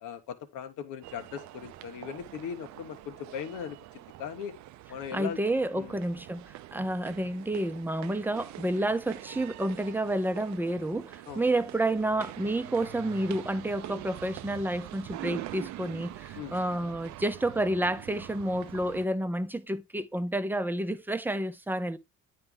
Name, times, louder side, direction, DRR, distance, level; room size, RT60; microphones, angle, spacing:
voice 1, 0.0-4.6 4.9-5.4 5.7-6.0 11.3-11.5 16.3-16.6, left 8 dB, 90° left, 1.2 m, -39 dB
sound 1, 1.0-19.1, right 15 dB, 70° right, 0.5 m, -45 dB
voice 2, 5.1-22.0, right 1 dB, 5° right, 0.6 m, -30 dB
9.6 x 3.3 x 3.6 m
cardioid pair, 105°, 30 cm